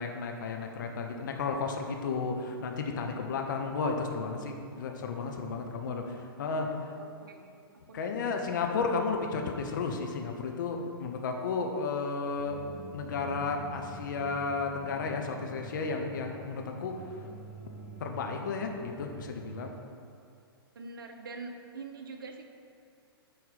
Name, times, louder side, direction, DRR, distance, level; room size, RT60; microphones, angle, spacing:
voice 1, 0.0-6.7 7.9-12.6 12.9-16.9 18.0-19.7, left 4 dB, 50° left, 3 dB, 0.8 m, -33 dB
voice 2, 5.5-6.6 6.9-7.5 7.9-8.5 20.7-22.4, right 3 dB, 60° right, 5 dB, 0.8 m, -45 dB
sound 1, 12.4-19.7, right 2 dB, 5° right, 0.8 m, -46 dB
8.1 x 4.4 x 4.1 m, 2.3 s
figure-of-eight pair, 115°, 13 cm